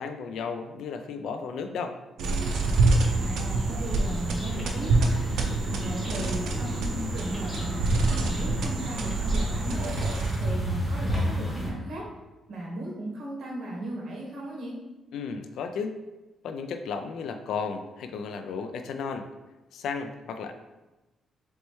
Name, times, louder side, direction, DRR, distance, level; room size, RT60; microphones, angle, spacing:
voice 1, 0.0-2.0 15.1-16.0 16.4-19.3 19.7-20.5, left 5 dB, 80° left, 7 dB, 0.3 m, -34 dB
sound 1, 2.2-11.7, equal, 5° left, 1.0 m, -32 dB
sound 2, 2.2-10.6, right 3 dB, 85° right, 0.5 m, -27 dB
voice 2, 3.1-5.2 5.8-9.8 10.4-12.1 12.5-14.7, right 1 dB, 65° right, -2 dB, 1.3 m, -36 dB
4.2 x 3.2 x 3.1 m, 1.1 s
cardioid pair, 115°, 0 cm